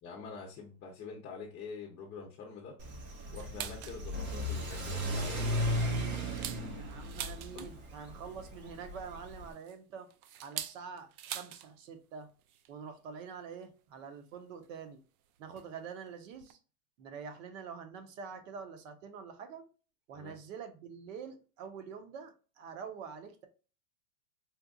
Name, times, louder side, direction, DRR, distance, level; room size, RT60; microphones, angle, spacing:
voice 1, 0.0-2.8 3.3-5.6 7.5-7.7 20.1-20.3, left 5 dB, 25° left, 0.8 m, -45 dB
Car / Accelerating revving vroom, 2.8-9.5, equal, 25° right, 0.7 m, -36 dB
sound 1, 3.4-4.0 4.5-4.6 5.0-5.2 5.7-8.0 9.1-11.7 12.0-12.1 12.4-12.7 13.6-13.7 14.6-14.7 15.6-15.7 16.1-16.2 16.3-16.5, right 11 dB, 75° right, 0.6 m, -43 dB
voice 2, 6.7-10.1 10.4-12.3 12.7-15.0 15.4-16.6 17.0-19.7 20.1-23.5, right 6 dB, 60° right, 1.0 m, -46 dB
4.4 x 2.5 x 2.4 m
supercardioid pair, 135°, 43 cm